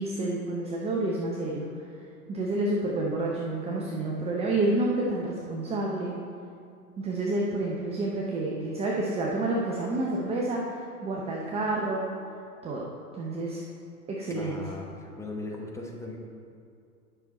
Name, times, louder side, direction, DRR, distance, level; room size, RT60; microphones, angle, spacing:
voice 1, 0.0-1.7 2.3-6.2 7.0-12.1 12.6-13.6 14.1-14.5, right 2 dB, 15° right, -2 dB, 0.6 m, -29 dB
voice 2, 14.3-16.2, left 2 dB, 5° left, -1 dB, 1.0 m, -38 dB
9.9 x 6.0 x 4.2 m, 2.4 s
hypercardioid pair, 105°, 46 cm